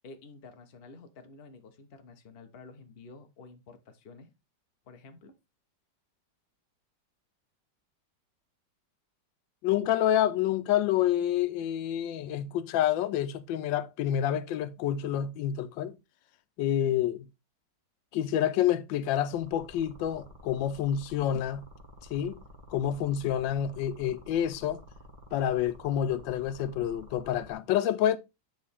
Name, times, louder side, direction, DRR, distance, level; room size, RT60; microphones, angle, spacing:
voice 1, 0.0-4.3 4.8-5.3, left 3 dB, 40° left, 0.9 m, -50 dB
voice 2, 9.6-16.0 16.6-17.3 18.1-21.7 22.1-22.4 22.7-24.8 25.3-28.2, left 10 dB, 85° left, 1.3 m, -28 dB
sound 1, 19.3-27.5, left 1 dB, 30° right, 1.3 m, -51 dB
8.9 x 4.1 x 3.5 m
omnidirectional pair, 2.0 m